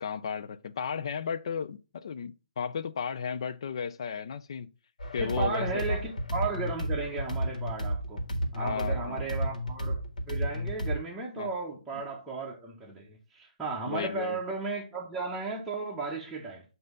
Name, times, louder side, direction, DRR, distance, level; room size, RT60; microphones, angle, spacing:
voice 1, 0.0-4.7 5.1-6.1 8.6-9.2 11.4-11.5 13.9-14.4, left 6 dB, 40° left, 0.4 m, -34 dB
sound 1, 5.0-11.0, equal, 75° left, 1.7 m, -32 dB
voice 2, 5.2-8.2 8.5-10.0 10.3-16.6, right 4 dB, 5° right, 0.7 m, -35 dB
7.6 x 2.7 x 5.2 m
hypercardioid pair, 165°, 4 cm